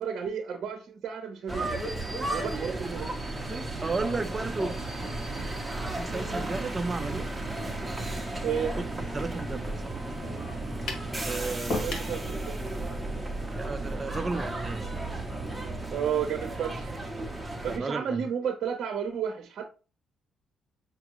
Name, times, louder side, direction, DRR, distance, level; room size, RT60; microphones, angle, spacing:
voice 1, 0.0-1.9 2.3-3.1 8.4-8.7 11.8-12.6 15.9-17.0 17.6-19.6, right 7 dB, 65° right, 0.8 m, -32 dB
sound 1, 1.5-15.9, right 2 dB, 20° left, 1.9 m, -44 dB
sound 2, 1.5-17.8, right 2 dB, 10° right, 0.9 m, -34 dB
voice 2, 3.8-4.8 6.0-7.3 9.1-10.0 11.3-11.8 13.6-14.9 17.7-18.2, right 3 dB, 30° right, 0.5 m, -33 dB
sound 3, 10.9-11.1 11.7-12.2, left 2 dB, 70° left, 1.4 m, -32 dB
5.9 x 2.3 x 3.0 m
cardioid pair, 90°, 0 cm